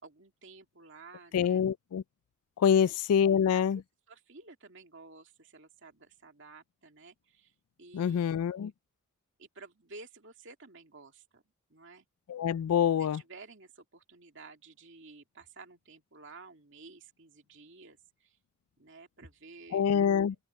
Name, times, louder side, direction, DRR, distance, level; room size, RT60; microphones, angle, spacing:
voice 1, 0.0-1.6 2.7-3.1 3.5-7.5 7.8-8.2 8.6-8.7 9.4-11.4 11.7-12.1 13.0-18.4 18.8-19.8, right 3 dB, 55° right, 2.6 m, -52 dB
voice 2, 1.3-2.0 2.6-3.8 7.9-8.7 12.3-13.2 19.7-20.4, left 8 dB, 85° left, 0.3 m, -26 dB
open air
head